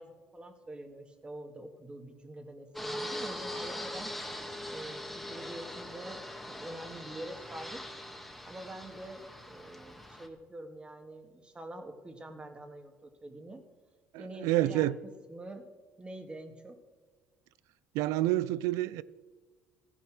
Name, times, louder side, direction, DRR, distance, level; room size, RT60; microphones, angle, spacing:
voice 1, 0.0-4.1 4.7-7.8 8.4-13.6 14.2-14.9 15.3-15.7 16.0-16.8, right 1 dB, 20° right, 1.9 m, -45 dB
Fixed-wing aircraft airplane, 2.7-10.3, left 1 dB, ahead, 1.7 m, -41 dB
voice 2, 14.1-15.0 17.9-19.0, right 15 dB, 80° right, 0.5 m, -28 dB
15.0 x 9.7 x 6.3 m
cardioid pair, 105°, 5 cm